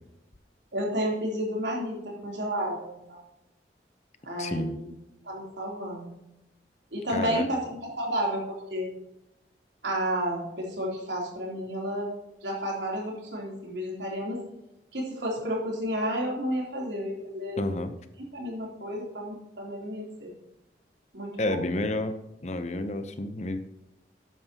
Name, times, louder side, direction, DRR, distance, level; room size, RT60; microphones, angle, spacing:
voice 1, 0.7-3.2 4.2-4.9 5.2-6.1 6.9-8.9 9.8-12.1 12.4-14.4 14.9-17.7 18.3-20.3 21.1-21.6, equal, 85° right, -2 dB, 3.4 m, -31 dB
voice 2, 4.4-4.8 7.1-7.5 17.6-17.9 21.4-22.1 22.4-23.6, left 1 dB, 40° left, 9 dB, 0.8 m, -30 dB
12.5 x 9.3 x 3.0 m, 0.89 s
head